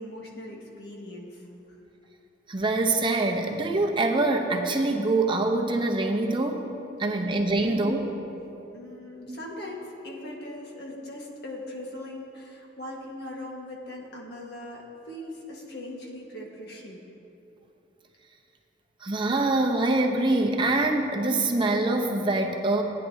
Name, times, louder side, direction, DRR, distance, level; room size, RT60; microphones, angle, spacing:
voice 1, 0.0-1.4 7.6-7.9 8.7-17.0, left 1 dB, 60° left, -1 dB, 1.6 m, -40 dB
voice 2, 2.5-6.6 7.0-8.1 9.3-9.4 19.0-22.8, right 2 dB, 25° right, 2 dB, 0.8 m, -24 dB
17.5 x 9.5 x 2.8 m, 2.9 s
head